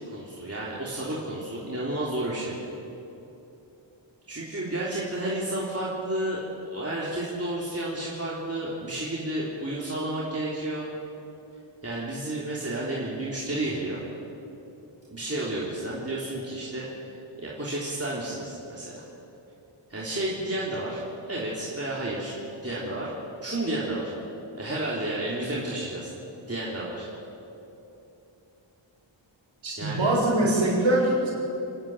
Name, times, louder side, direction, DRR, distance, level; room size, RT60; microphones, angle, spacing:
voice 1, 0.1-2.6 4.3-10.9 11.8-14.0 15.1-16.9 17.4-19.0 19.9-22.3 22.6-23.1 23.4-24.1 24.5-26.1 26.5-27.1 29.7-30.1, right 1 dB, 30° right, -6 dB, 3.5 m, -31 dB
voice 2, 29.6-31.3, right 1 dB, 85° right, -6 dB, 6.3 m, -23 dB
28.5 x 10.0 x 9.0 m, 2.9 s
wide cardioid pair, 70°, 46 cm